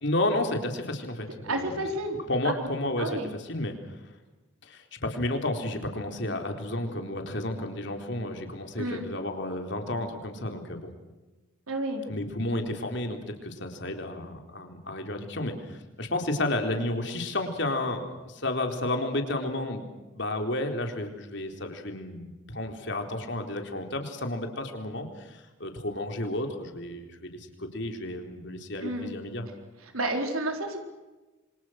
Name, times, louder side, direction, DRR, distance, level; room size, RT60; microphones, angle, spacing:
voice 1, 0.0-1.7 2.3-3.2 3.5-3.9 4.6-10.9 12.1-19.9 20.1-29.4, left 1 dB, 55° left, 4 dB, 4.1 m, -32 dB
voice 2, 1.4-2.2 2.4-2.7 3.0-3.3 8.8-9.1 11.7-12.0 28.8-29.1 29.8-30.8, right 1 dB, 90° right, 4 dB, 4.3 m, -30 dB
27.5 x 25.5 x 6.5 m, 1.1 s
head